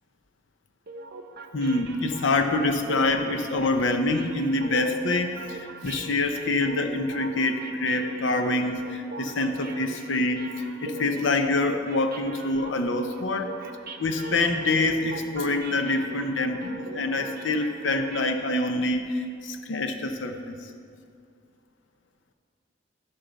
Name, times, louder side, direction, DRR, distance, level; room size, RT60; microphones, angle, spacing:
sound 1, 0.9-18.7, right 3 dB, 55° right, 0.7 m, -42 dB
voice 1, 1.5-10.5 10.8-13.6 14.0-20.6, left 2 dB, 85° left, 6 dB, 0.7 m, -26 dB
15.0 x 5.5 x 4.0 m, 2.3 s
head